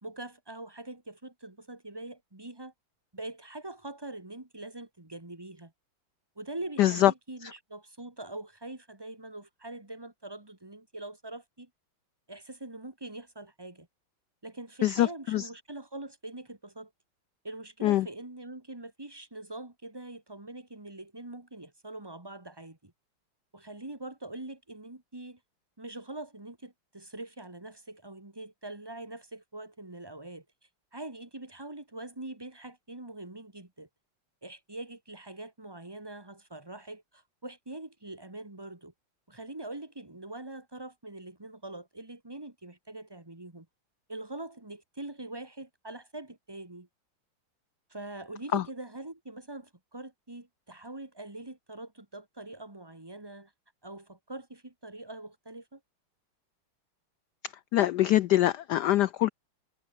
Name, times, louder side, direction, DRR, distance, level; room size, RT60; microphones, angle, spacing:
voice 1, 0.0-2.7 3.1-5.7 6.3-11.7 12.3-13.9 14.4-16.9 17.4-22.9 23.5-25.4 25.8-30.4 30.9-33.9 34.4-38.9 39.3-43.7 44.1-46.9 47.9-53.5 53.8-55.8, right 2 dB, 10° right, 1.8 m, -43 dB
voice 2, 6.8-7.1 14.8-15.4 17.8-18.1 48.5-48.6 57.7-59.3, left 14 dB, 80° left, 0.9 m, -23 dB
omnidirectional pair, 2.4 m